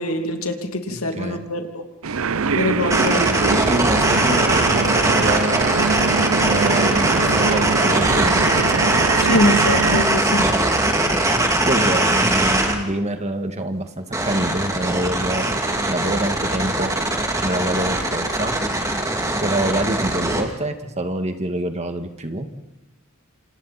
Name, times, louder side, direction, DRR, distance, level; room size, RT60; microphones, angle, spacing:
voice 1, 0.0-1.8 2.6-3.2 9.2-10.5, left 1 dB, 85° left, 4 dB, 2.8 m, -23 dB
voice 2, 0.9-1.4 3.7-5.8 6.4-8.4 10.9-15.6 15.9-16.9 17.4-18.6 19.4-22.5, right 1 dB, 30° right, 6 dB, 2.0 m, -26 dB
sound 1, 2.0-10.0, right 5 dB, 70° right, 0.7 m, -23 dB
sound 2, 2.9-12.8 14.1-20.4, right 1 dB, 15° right, 2.7 m, -21 dB
28.0 x 28.0 x 4.3 m, 0.95 s
head